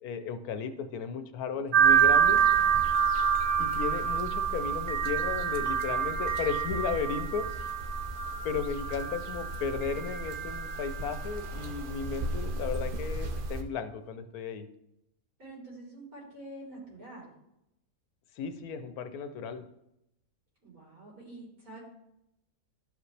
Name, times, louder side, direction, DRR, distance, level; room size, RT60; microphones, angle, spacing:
voice 1, 0.0-2.4 3.6-7.5 8.4-14.7 18.4-19.7, left 6 dB, 85° left, 9 dB, 1.2 m, -35 dB
voice 2, 1.5-2.8 15.4-17.3 20.6-21.8, right 2 dB, 75° right, -5 dB, 4.2 m, -47 dB
sound 1, 1.7-13.6, right 7 dB, 50° right, 0.6 m, -28 dB
12.0 x 5.1 x 3.3 m, 0.83 s
omnidirectional pair, 1.5 m